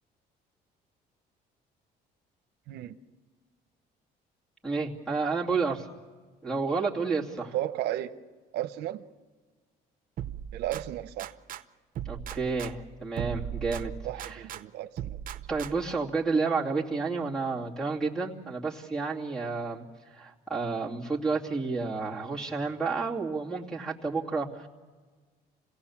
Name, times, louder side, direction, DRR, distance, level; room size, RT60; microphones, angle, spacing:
voice 1, 4.6-5.9 6.4-7.5 12.0-13.9 14.2-14.4 15.5-19.8 20.1-24.7, right 4 dB, 5° left, 3 dB, 2.6 m, -30 dB
voice 2, 7.5-8.1 8.5-9.0 10.5-11.3 14.0-15.2, right 13 dB, 80° right, 9 dB, 0.8 m, -34 dB
sound 1, 10.2-11.6 11.9-14.6 15.0-16.0, right 10 dB, 55° right, 0.9 m, -38 dB
26.5 x 17.5 x 7.2 m, 1.5 s
cardioid pair, 110°, 17 cm